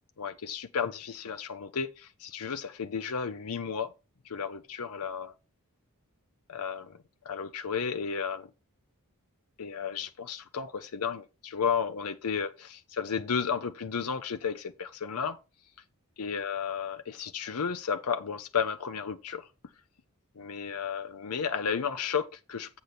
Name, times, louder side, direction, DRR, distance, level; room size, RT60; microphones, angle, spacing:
voice 1, 0.2-3.9 4.2-5.3 6.5-6.9 7.2-8.5 9.6-15.4 16.2-19.5 20.4-22.8, left 6 dB, 85° left, 0.7 m, -33 dB
8.0 x 6.9 x 4.3 m
head